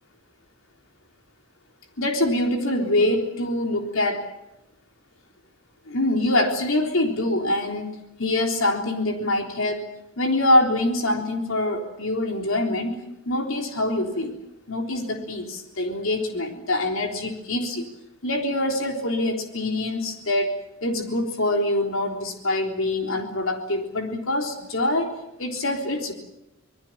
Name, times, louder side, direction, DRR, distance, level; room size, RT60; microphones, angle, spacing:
voice 1, 2.0-4.2 5.9-7.9 8.2-9.9 10.2-13.0 13.3-14.3 14.7-17.8 18.2-20.5 20.8-25.1 25.4-26.1, left 1 dB, 70° left, 3 dB, 3.7 m, -24 dB
26.5 x 22.0 x 7.5 m, 0.87 s
head